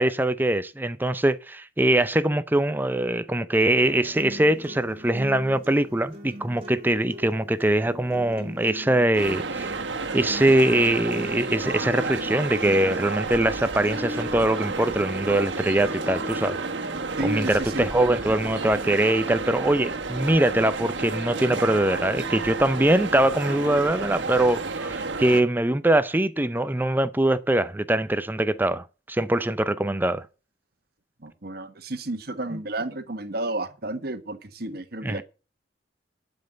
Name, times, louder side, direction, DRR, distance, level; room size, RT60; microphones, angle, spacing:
voice 1, 0.0-9.7 10.1-16.6 17.2-30.2 35.0-35.2, right 1 dB, 10° right, 0.6 m, -23 dB
sound 1, 3.8-19.8, left 1 dB, 30° right, 2.6 m, -41 dB
sound 2, 9.2-25.4, right 3 dB, 85° right, 1.5 m, -31 dB
voice 2, 17.2-17.9 31.2-35.2, right 2 dB, 55° right, 1.4 m, -31 dB
12.0 x 5.4 x 7.5 m
head